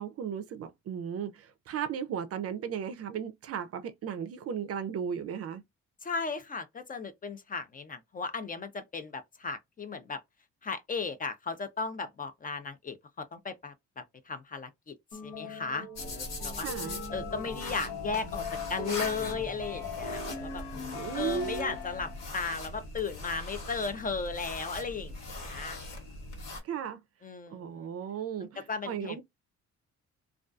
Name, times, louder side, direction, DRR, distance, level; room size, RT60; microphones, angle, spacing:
voice 1, 0.0-5.6 16.6-17.0 20.9-21.8 26.6-27.0 27.5-29.2, right 8 dB, 55° right, 0.4 m, -35 dB
voice 2, 6.0-10.2 10.6-13.7 14.3-14.9 15.2-16.7 17.1-18.4 18.7-20.6 21.1-25.8 27.2-27.9 28.7-29.2, left 4 dB, 30° left, 0.4 m, -36 dB
sound 1, 15.1-22.4, left 4 dB, 90° left, 1.0 m, -40 dB
sound 2, 15.9-26.6, left 2 dB, 65° left, 1.5 m, -41 dB
2.3 x 2.2 x 2.4 m
cardioid pair, 90°, 30 cm